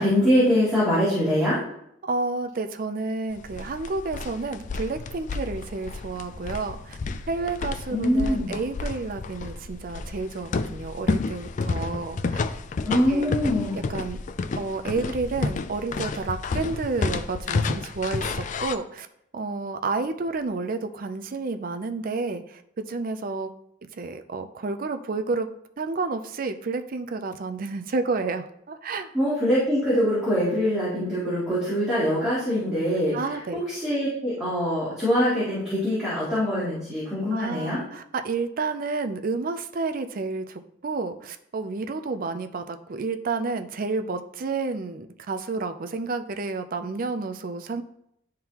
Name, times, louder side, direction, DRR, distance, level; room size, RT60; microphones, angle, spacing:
voice 1, 0.0-1.6 7.9-8.5 12.9-13.8 29.1-33.1 33.5-37.8, equal, 5° right, -12 dB, 2.6 m, -23 dB
voice 2, 2.0-7.0 7.3-12.4 12.9-13.3 13.7-14.2 14.5-19.1 19.3-23.5 23.9-25.5 25.8-29.1 33.1-33.6 37.3-47.8, right 3 dB, 45° right, 8 dB, 0.5 m, -30 dB
sound 1, 3.3-18.8, left 4 dB, 40° left, 0.3 m, -31 dB
11.0 x 3.7 x 2.9 m, 0.76 s
head